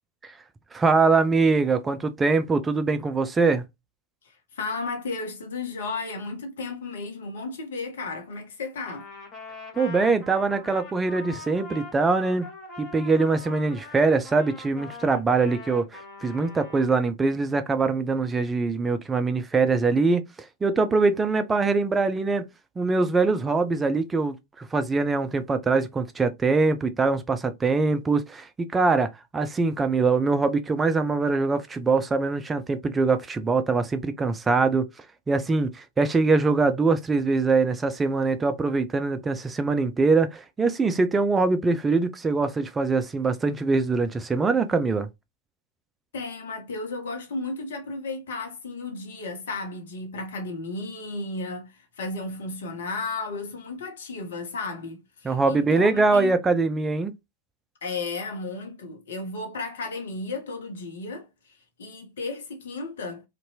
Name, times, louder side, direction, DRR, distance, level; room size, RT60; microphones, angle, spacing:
voice 1, 0.7-3.6 9.8-12.5 12.8-20.2 20.6-22.4 22.8-45.1 55.2-57.2, right 4 dB, 15° right, 0.3 m, -23 dB
voice 2, 4.2-9.1 46.1-56.4 57.8-63.2, left 3 dB, 60° left, 0.7 m, -34 dB
Trumpet, 8.9-17.0, left 3 dB, 20° left, 0.9 m, -42 dB
2.6 x 2.2 x 2.6 m
figure-of-eight pair, 90°, 0 cm